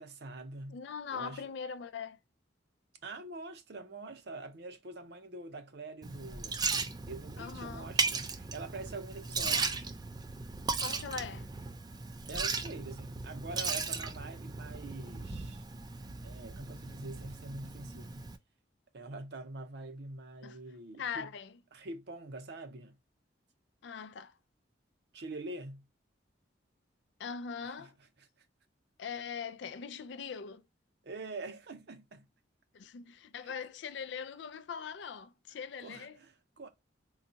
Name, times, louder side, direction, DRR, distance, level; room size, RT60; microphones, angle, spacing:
voice 1, 0.0-0.8 1.1-1.5 3.0-6.7 7.1-9.9 12.3-15.6 16.2-18.3 18.9-21.3 21.7-23.0 25.1-25.9 27.8-27.9 31.0-32.3 33.4-33.5 35.8-36.7, right 2 dB, 60° right, 0.6 m, -45 dB
voice 2, 0.7-2.2 7.4-7.9 10.8-11.5 20.4-20.6 21.0-21.5 23.8-24.3 27.2-28.0 29.0-30.6 32.7-36.2, left 6 dB, 65° left, 0.4 m, -41 dB
Liquid, 6.0-18.4, right 4 dB, 20° right, 0.4 m, -37 dB
3.9 x 2.3 x 2.7 m
head